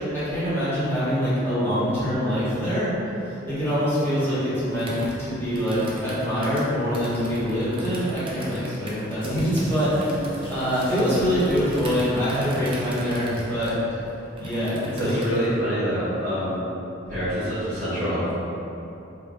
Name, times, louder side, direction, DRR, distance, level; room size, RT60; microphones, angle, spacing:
voice 1, 0.0-2.9 3.2-4.9 5.2-13.7 14.4-15.1, equal, 10° left, -12 dB, 1.0 m, -24 dB
Computer keyboard, 4.7-15.5, right 1 dB, 25° right, 0.4 m, -38 dB
sound 1, 9.2-15.6, equal, 25° left, 0.6 m, -40 dB
voice 2, 15.0-16.6 17.1-18.3, equal, 45° right, -15 dB, 1.2 m, -26 dB
3.3 x 3.3 x 2.2 m, 2.9 s
head